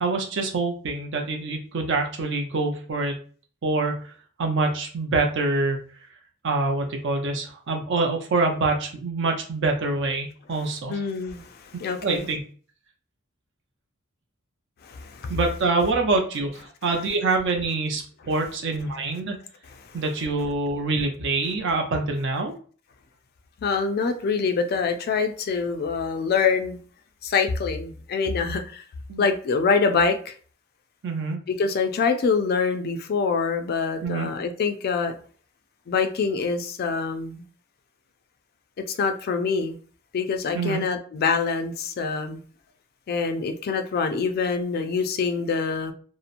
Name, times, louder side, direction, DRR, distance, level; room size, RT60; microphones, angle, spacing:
voice 1, 0.0-3.2 3.6-4.1 4.4-5.8 6.4-11.0 12.0-12.4 15.3-19.4 19.9-22.5 29.1-29.3 31.0-31.4 34.0-34.3 40.5-40.8, right 3 dB, 60° right, 0.5 m, -25 dB
voice 2, 10.9-12.3 14.8-15.4 23.6-26.8 27.2-28.8 29.2-30.3 31.5-35.1 35.9-37.4 38.9-39.8 40.1-42.4 43.1-45.9, left 5 dB, 50° left, 0.3 m, -25 dB
2.8 x 2.0 x 2.4 m
head